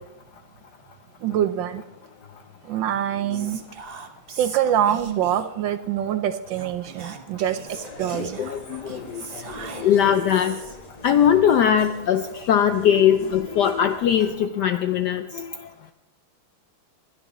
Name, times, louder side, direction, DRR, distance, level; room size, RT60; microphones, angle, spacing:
voice 1, 1.2-1.8 2.6-3.6 4.4-8.5, right 10 dB, 75° right, 11 dB, 1.2 m, -25 dB
Whispering, 3.3-5.6 6.5-10.9, right 6 dB, 50° right, 0.7 m, -39 dB
sound 1, 7.6-14.4, left 1 dB, 20° left, 1.4 m, -43 dB
voice 2, 8.1-9.2 9.8-10.6 11.0-15.5, left 9 dB, 75° left, 8 dB, 0.9 m, -20 dB
21.0 x 11.5 x 3.0 m, 0.99 s
omnidirectional pair, 2.3 m